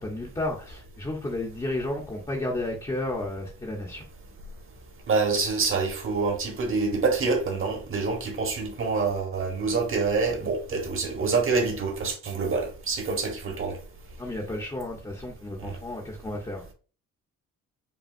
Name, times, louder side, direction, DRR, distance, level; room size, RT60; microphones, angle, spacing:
voice 1, 0.0-4.0 14.2-16.6, left 1 dB, 15° left, 0.9 m, -32 dB
voice 2, 5.1-13.8 15.6-15.8, right 4 dB, 45° right, 1.3 m, -26 dB
5.4 x 2.3 x 2.5 m
cardioid pair, 90°, 30 cm